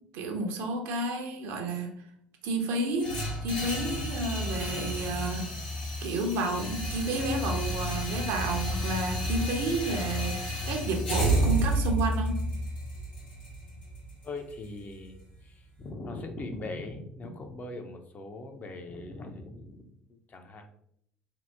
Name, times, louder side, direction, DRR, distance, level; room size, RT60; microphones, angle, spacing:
voice 1, 0.1-1.9 2.4-3.1 3.4-5.5 6.0-10.4 10.6-12.4, right 2 dB, 65° right, 4 dB, 0.6 m, -31 dB
sound 1, 3.0-15.0, equal, 90° left, 0.8 m, -31 dB
voice 2, 14.2-15.2 15.4-20.7, left 2 dB, 35° left, 5 dB, 0.5 m, -40 dB
2.8 x 2.0 x 3.4 m, 0.72 s
hypercardioid pair, 65°, 5 cm